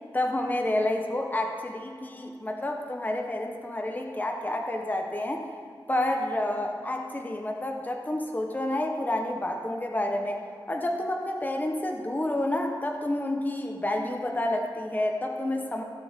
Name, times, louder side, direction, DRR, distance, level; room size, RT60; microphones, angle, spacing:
voice 1, 0.1-5.4 5.9-10.4 10.7-15.8, left 1 dB, 20° left, 2 dB, 0.9 m, -29 dB
16.0 x 6.8 x 3.5 m, 2.2 s
wide cardioid pair, 90°, 8 cm